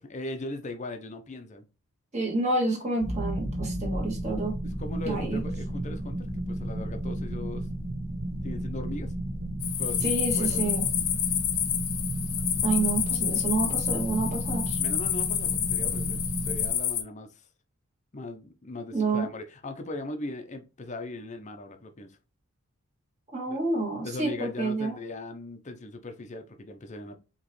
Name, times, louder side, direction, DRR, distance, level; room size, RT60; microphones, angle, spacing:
voice 1, 0.0-1.7 4.6-7.7 8.4-9.1 9.8-10.7 12.8-12.9 14.8-17.5 18.1-22.2 23.5-23.6 24.0-27.2, left 2 dB, 30° left, 0.6 m, -39 dB
voice 2, 2.1-4.6 5.0-5.4 10.0-10.9 12.6-14.8 18.9-19.3 23.3-25.0, right 3 dB, 30° right, 1.4 m, -29 dB
sound 1, 3.0-16.7, right 1 dB, 50° right, 1.9 m, -33 dB
sound 2, 9.6-17.0, left 10 dB, 80° left, 0.7 m, -29 dB
4.8 x 3.0 x 3.0 m
head